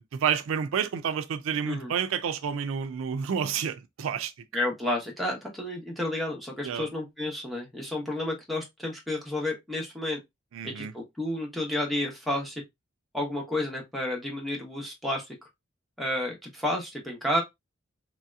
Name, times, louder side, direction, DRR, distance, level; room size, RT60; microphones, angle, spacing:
voice 1, 0.2-4.3 6.6-6.9 10.5-10.9, right 7 dB, 75° right, 0.3 m, -29 dB
voice 2, 4.5-10.2 10.6-12.6 13.1-15.2 16.0-17.4, left 1 dB, ahead, 0.8 m, -31 dB
3.1 x 2.7 x 2.2 m
head